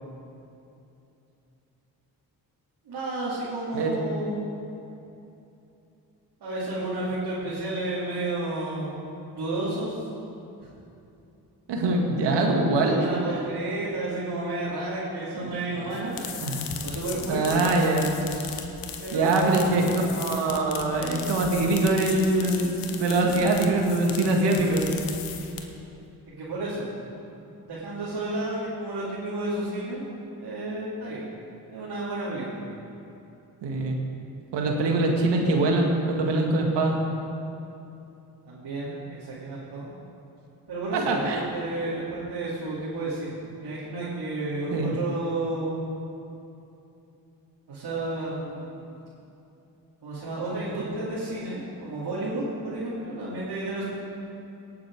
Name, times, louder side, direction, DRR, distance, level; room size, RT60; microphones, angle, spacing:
voice 1, 2.8-4.6 6.4-9.0 9.3-10.0 12.8-16.2 16.8-17.8 19.0-20.0 26.3-26.9 27.3-30.0 30.4-31.3 31.7-32.6 38.4-39.9 40.7-45.8 47.7-48.9 50.0-53.8, right 2 dB, 65° right, -9 dB, 3.0 m, -31 dB
voice 2, 11.7-13.0 15.4-15.5 15.9-16.0 16.4-16.7 17.3-18.1 19.1-19.9 20.1-24.8 33.6-34.0 34.5-37.0 40.9-41.4 44.7-45.0, right 2 dB, 80° right, 1 dB, 1.9 m, -23 dB
sound 1, 15.9-25.9, left 7 dB, 90° left, 1.1 m, -38 dB
18.0 x 7.2 x 4.8 m, 2.8 s
supercardioid pair, 55°, 41 cm